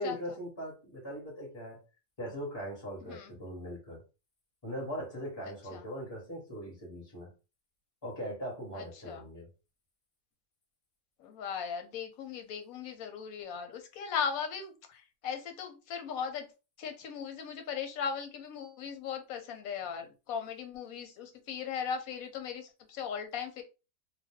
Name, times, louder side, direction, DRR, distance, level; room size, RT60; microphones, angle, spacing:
voice 1, 0.0-1.8 2.2-4.0 4.6-7.3 8.0-9.5, equal, 20° left, -3 dB, 1.2 m, -40 dB
voice 2, 3.0-3.3 5.7-5.8 8.7-9.2 11.2-16.5 16.8-23.6, left 7 dB, 85° left, 5 dB, 1.1 m, -38 dB
2.6 x 2.2 x 3.4 m, 0.30 s
omnidirectional pair, 1.5 m